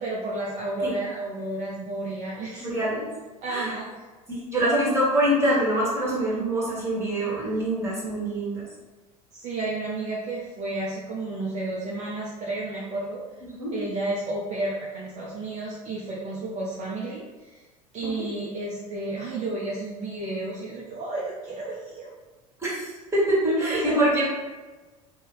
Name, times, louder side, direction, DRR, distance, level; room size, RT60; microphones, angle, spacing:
voice 1, 0.0-2.7 3.4-3.9 9.3-13.2 13.7-17.6 17.9-22.1 23.6-24.2, right 2 dB, 35° right, -6 dB, 0.6 m, -32 dB
voice 2, 2.6-3.0 3.5-3.7 4.3-8.6 13.4-13.7 18.0-18.1 22.6-24.2, right 1 dB, 15° right, -6 dB, 1.5 m, -24 dB
2.7 x 2.3 x 3.0 m, 1.2 s
figure-of-eight pair, 75°, 20 cm